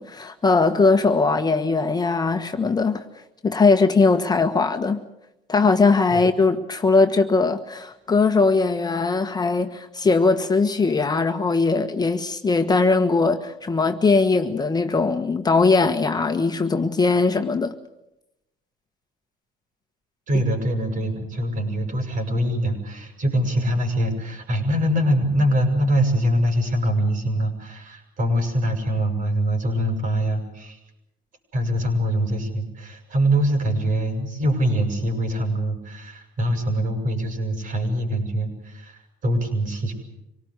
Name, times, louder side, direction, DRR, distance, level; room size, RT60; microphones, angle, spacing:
voice 1, 0.0-3.0 3.4-5.0 5.5-17.7, left 4 dB, 25° left, 1.4 m, -20 dB
voice 2, 20.3-30.8 31.5-39.9, equal, 50° right, 7.7 m, -23 dB
26.0 x 18.5 x 8.2 m
cardioid pair, 110°, 17 cm